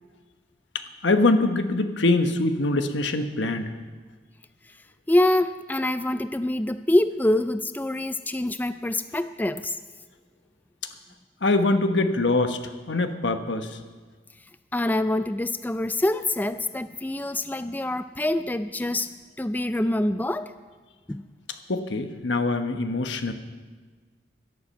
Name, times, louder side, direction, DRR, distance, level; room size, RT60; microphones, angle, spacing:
voice 1, 1.0-3.7 11.4-12.6 12.9-13.7 21.7-23.3, left 2 dB, 85° left, 7 dB, 1.2 m, -23 dB
voice 2, 5.1-9.8 14.7-19.1 19.4-20.5 21.1-21.2, left 1 dB, 10° left, 11 dB, 0.3 m, -25 dB
12.5 x 11.5 x 7.4 m, 1.5 s
head